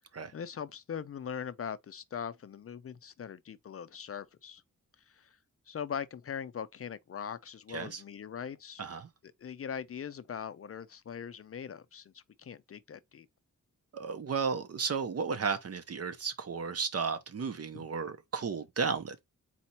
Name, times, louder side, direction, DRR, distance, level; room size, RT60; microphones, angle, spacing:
voice 1, 0.3-4.6 5.1-5.4 5.7-8.8 9.2-13.3 17.7-17.8, left 7 dB, 45° left, 0.4 m, -41 dB
voice 2, 7.7-8.0 8.8-9.1 13.9-19.2, right 5 dB, 50° right, 0.7 m, -34 dB
4.2 x 2.9 x 4.3 m
wide cardioid pair, 135°, 31 cm